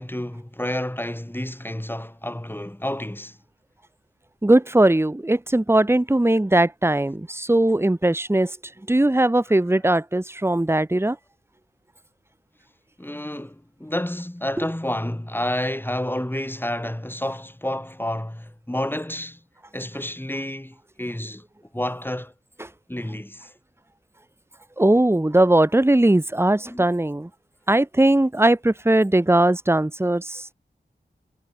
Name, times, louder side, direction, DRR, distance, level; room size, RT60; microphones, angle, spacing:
voice 1, 0.0-3.4 13.0-19.4 19.7-21.4 21.7-22.3 22.9-23.5 26.6-26.8, left 1 dB, 10° left, 4.4 m, -30 dB
voice 2, 4.4-8.6 8.9-11.2 14.6-14.7 22.6-22.7 24.8-27.3 27.7-30.5, right 1 dB, 15° right, 1.3 m, -19 dB
wide cardioid pair, 65°, 18 cm